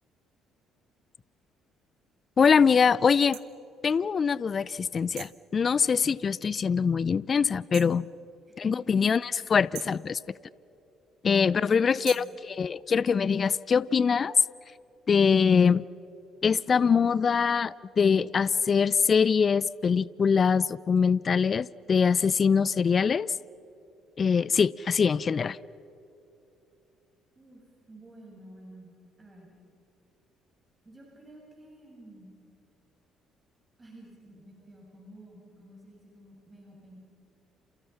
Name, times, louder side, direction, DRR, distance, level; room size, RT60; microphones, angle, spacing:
voice 1, 2.4-3.4 3.8-8.1 8.6-10.2 11.2-14.3 15.1-15.8 16.4-23.3 24.2-25.6, left 6 dB, 45° left, 22 dB, 0.5 m, -23 dB
sound 1, 3.3-3.5 5.2-5.4 7.7-8.0 9.7-10.0 12.0-12.4, right 17 dB, 75° right, 1.2 m, -42 dB
voice 2, 8.5-8.9 11.5-12.3 27.3-29.5 30.9-32.3 33.8-37.0, right 1 dB, 25° right, -2 dB, 7.2 m, -51 dB
29.0 x 28.0 x 5.8 m, 2.8 s
hypercardioid pair, 55°, 0 cm